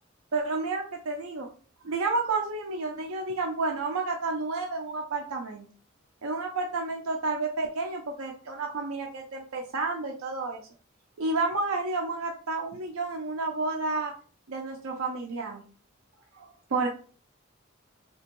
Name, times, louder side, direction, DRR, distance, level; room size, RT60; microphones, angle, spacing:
voice 1, 0.3-1.5 1.8-5.6 6.2-10.6 11.2-14.1 14.5-15.6 16.3-16.9, right 3 dB, 90° right, 2 dB, 0.5 m, -30 dB
3.4 x 2.9 x 2.9 m, 0.41 s
head